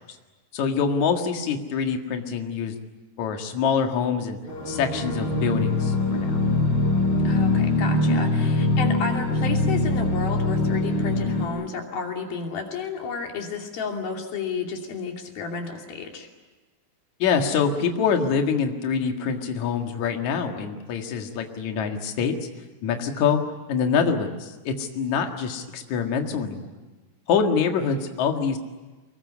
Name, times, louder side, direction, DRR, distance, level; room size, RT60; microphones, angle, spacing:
voice 1, 0.5-2.7 3.2-4.4 4.7-6.4 17.2-22.3 22.8-23.4 23.7-26.7 27.3-28.6, left 6 dB, 55° left, 4 dB, 2.9 m, -25 dB
sound 1, 4.5-11.5, left 2 dB, 30° left, 4.6 m, -23 dB
voice 2, 7.2-16.3, left 5 dB, 70° left, 2 dB, 4.7 m, -32 dB
24.5 x 21.5 x 9.7 m, 1.2 s
omnidirectional pair, 4.4 m